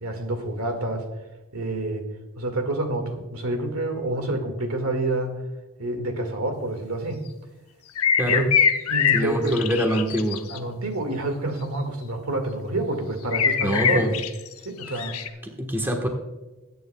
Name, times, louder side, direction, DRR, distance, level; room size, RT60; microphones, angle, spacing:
voice 1, 0.0-1.1 1.5-2.1 2.4-5.3 5.8-7.2 8.3-8.5 8.9-9.6 10.5-14.1 14.7-15.2, right 2 dB, 80° right, 5 dB, 1.9 m, -28 dB
sound 1, 8.0-10.6 13.3-14.5 14.8-15.3, left 7 dB, 90° left, 0.9 m, -23 dB
voice 2, 9.1-10.4 13.6-14.1 14.9-15.0 15.4-16.1, equal, 10° right, 2 dB, 1.2 m, -24 dB
21.0 x 9.3 x 2.3 m, 1.1 s
head